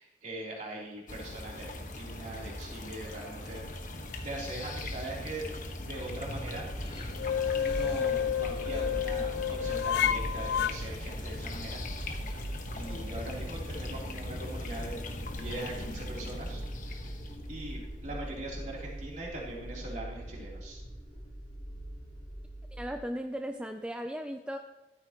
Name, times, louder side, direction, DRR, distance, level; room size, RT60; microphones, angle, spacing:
voice 1, 0.0-3.7 4.2-5.5 5.8-6.7 7.6-11.8 12.7-15.0 15.3-17.2 17.5-20.8, right 1 dB, 45° right, -3 dB, 3.4 m, -41 dB
sound 1, 1.1-19.2, left 1 dB, 45° left, 1.3 m, -40 dB
sound 2, 6.7-23.0, right 1 dB, 30° left, 4.0 m, -42 dB
sound 3, 7.2-10.7, left 8 dB, 70° left, 0.3 m, -30 dB
voice 2, 22.7-24.6, equal, 5° right, 5 dB, 0.4 m, -36 dB
14.5 x 13.0 x 3.0 m, 1.2 s
head